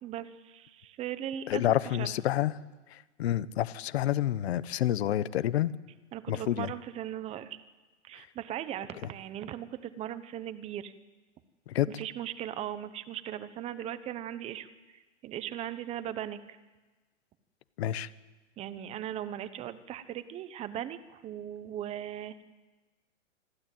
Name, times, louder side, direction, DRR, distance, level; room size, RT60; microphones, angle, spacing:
voice 1, 0.0-1.6 2.0-2.1 6.1-7.6 8.0-10.9 12.0-16.6 18.6-22.4, right 11 dB, 15° right, 12 dB, 0.9 m, -38 dB
voice 2, 1.5-2.5 2.9-5.7 6.3-6.7 8.2-8.3 11.7-12.0 17.8-18.1, left 12 dB, 60° left, 17 dB, 1.0 m, -29 dB
26.0 x 12.5 x 9.0 m, 1.3 s
hypercardioid pair, 150°, 37 cm